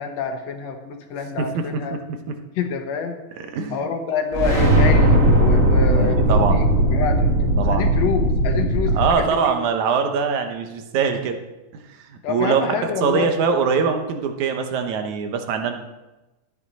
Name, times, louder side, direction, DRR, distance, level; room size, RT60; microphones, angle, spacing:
voice 1, 0.0-2.0 2.6-3.2 3.7-9.6 12.2-13.3, left 6 dB, 70° left, 5 dB, 2.0 m, -27 dB
voice 2, 3.4-3.9 5.9-6.6 7.6-7.9 8.9-11.4 11.7-12.0 12.3-15.7, right 6 dB, 80° right, 5 dB, 2.5 m, -23 dB
sound 1, 4.3-9.1, right 1 dB, 30° right, 1.8 m, -17 dB
12.5 x 9.7 x 4.2 m, 1.0 s
omnidirectional pair, 3.4 m